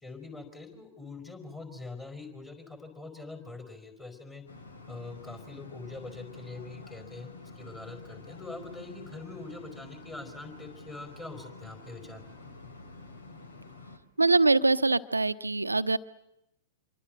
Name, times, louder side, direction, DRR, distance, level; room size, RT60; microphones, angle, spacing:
voice 1, 0.0-4.4 4.9-12.2, left 3 dB, 15° left, 8 dB, 4.8 m, -43 dB
sound 1, 4.5-14.0, left 3 dB, 70° left, 2.9 m, -48 dB
voice 2, 14.2-16.0, right 3 dB, 85° right, 12 dB, 0.9 m, -23 dB
26.5 x 24.0 x 7.6 m, 0.85 s
figure-of-eight pair, 100°, 0 cm